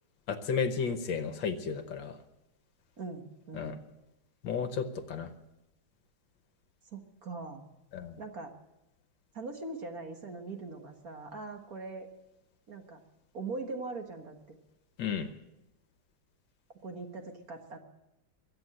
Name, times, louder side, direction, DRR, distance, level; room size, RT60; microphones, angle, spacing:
voice 1, 0.3-2.2 3.5-3.8 4.4-5.3 7.9-8.2 15.0-15.3, left 6 dB, 70° left, 9 dB, 1.6 m, -33 dB
voice 2, 3.0-3.8 6.9-7.7 8.2-8.5 9.3-12.1 12.7-13.0 13.3-14.6 16.8-17.8, right 3 dB, 50° right, 4 dB, 1.8 m, -41 dB
23.0 x 8.0 x 7.7 m, 0.93 s
omnidirectional pair, 2.3 m